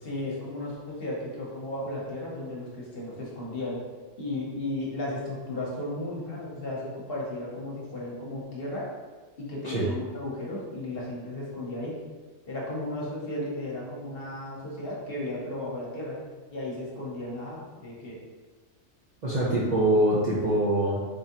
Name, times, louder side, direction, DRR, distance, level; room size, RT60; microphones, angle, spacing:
voice 1, 0.0-3.8 4.2-8.9 9.4-11.9 12.5-16.2 16.5-18.2, left 1 dB, 50° left, -4 dB, 1.0 m, -34 dB
voice 2, 19.2-21.1, right 1 dB, 45° right, -7 dB, 0.6 m, -24 dB
3.7 x 3.4 x 2.8 m, 1.4 s
omnidirectional pair, 1.3 m